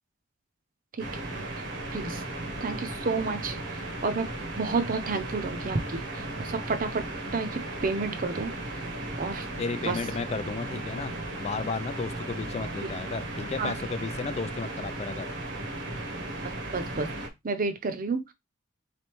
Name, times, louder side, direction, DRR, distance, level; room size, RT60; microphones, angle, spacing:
sound 1, 1.0-17.3, right 2 dB, 65° right, 1.0 m, -36 dB
voice 1, 1.9-2.3 2.6-4.3 4.6-7.0 7.3-8.5 9.2-9.5 9.9-10.0 13.6-13.7 16.7-17.1 17.4-18.2, right 4 dB, 45° right, 0.7 m, -30 dB
voice 2, 9.6-11.1 11.4-15.3, left 4 dB, 35° left, 0.3 m, -33 dB
3.9 x 3.3 x 3.0 m
head